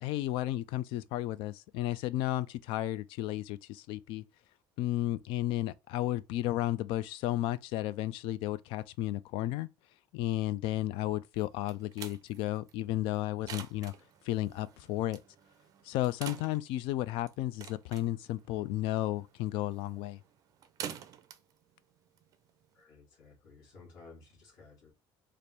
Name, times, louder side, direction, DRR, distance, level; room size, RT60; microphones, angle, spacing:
voice 1, 0.0-4.2 4.8-9.7 10.1-13.9 14.2-15.2 15.8-20.2, left 14 dB, 75° left, 0.4 m, -33 dB
sound 1, 11.4-22.8, right 9 dB, 40° right, 0.4 m, -49 dB
voice 2, 22.7-24.9, left 3 dB, 55° left, 1.6 m, -55 dB
3.3 x 2.5 x 4.2 m
cardioid pair, 170°, 9 cm